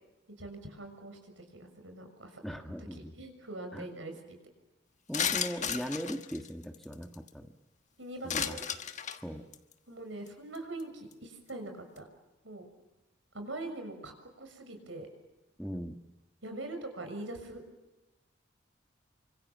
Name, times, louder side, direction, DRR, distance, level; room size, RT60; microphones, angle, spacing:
voice 1, 0.4-4.4 8.0-8.6 9.9-12.1 12.4-12.6 13.3-15.1 16.4-17.6, right 2 dB, 85° right, 6 dB, 6.5 m, -43 dB
voice 2, 2.4-3.1 3.7-3.9 5.1-7.5 8.2-8.6 9.2-9.5 15.6-15.9, equal, ahead, 5 dB, 1.4 m, -39 dB
sound 1, 5.1-7.3 8.3-9.2 9.5-9.7 10.3-10.4 10.5-10.8 11.1-11.2, left 8 dB, 40° left, 1.4 m, -33 dB
29.0 x 25.5 x 7.2 m, 1.1 s
head